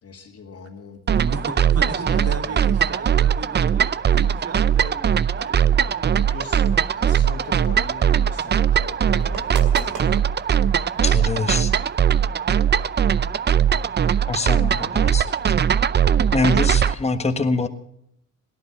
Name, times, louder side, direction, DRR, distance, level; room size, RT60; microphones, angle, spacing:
voice 1, 0.0-1.0 1.8-2.7 6.1-10.4, left 4 dB, 50° left, -2 dB, 2.2 m, -41 dB
sound 1, 1.1-16.9, right 8 dB, 35° right, 0.6 m, -20 dB
voice 2, 1.1-6.1, right 3 dB, 55° right, 4 dB, 2.9 m, -35 dB
sound 2, 6.1-12.2, right 7 dB, 85° right, 2.6 m, -39 dB
voice 3, 11.0-11.7 14.3-15.5 16.3-17.7, left 3 dB, 20° left, 7 dB, 1.5 m, -24 dB
17.5 x 11.5 x 7.1 m, 0.74 s
cardioid pair, 90°, 30 cm